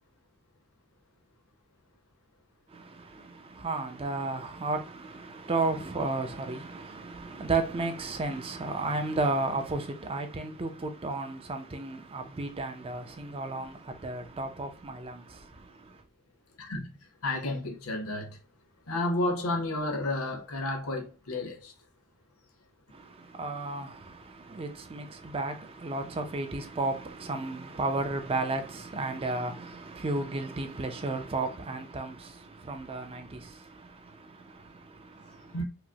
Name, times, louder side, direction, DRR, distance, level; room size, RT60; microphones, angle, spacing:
voice 1, 2.7-16.0 22.9-35.6, right 3 dB, 25° right, 0.5 m, -34 dB
voice 2, 16.6-16.9 17.2-18.4 18.9-21.7 35.5-35.6, left 2 dB, 70° left, 0.9 m, -31 dB
4.8 x 2.1 x 2.8 m
head